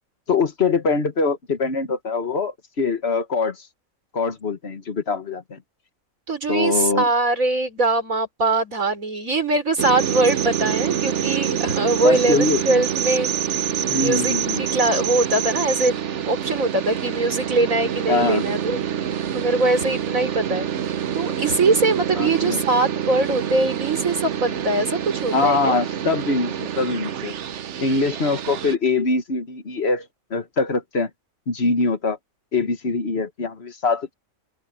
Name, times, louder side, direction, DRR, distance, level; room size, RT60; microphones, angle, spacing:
voice 1, 0.3-3.6 4.1-5.6 6.5-7.1 12.0-12.6 13.9-14.6 18.1-18.4 22.2-22.6 25.3-27.3 27.8-31.1 31.5-32.2 32.5-34.1, left 4 dB, 50° left, 1.7 m, -23 dB
voice 2, 6.3-13.3 13.9-16.0 16.3-18.8 19.3-20.7 21.1-25.8, right 2 dB, 80° right, 5.3 m, -22 dB
sound 1, 9.8-28.8, right 9 dB, 60° right, 1.1 m, -26 dB
open air
omnidirectional pair, 1.4 m